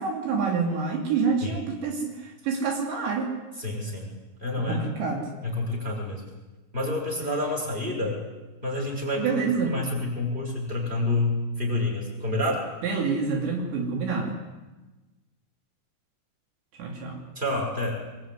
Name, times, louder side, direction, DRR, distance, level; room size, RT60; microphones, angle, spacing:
voice 1, 0.0-3.3 4.6-5.2 9.1-9.7 12.8-14.3 16.8-17.2, right 5 dB, 75° right, 1 dB, 5.0 m, -27 dB
voice 2, 3.6-4.1 4.4-4.8 5.4-6.2 6.7-8.2 8.6-12.6 17.4-18.0, left 2 dB, 10° right, -1 dB, 6.9 m, -28 dB
23.0 x 22.0 x 9.7 m, 1.2 s
omnidirectional pair, 5.2 m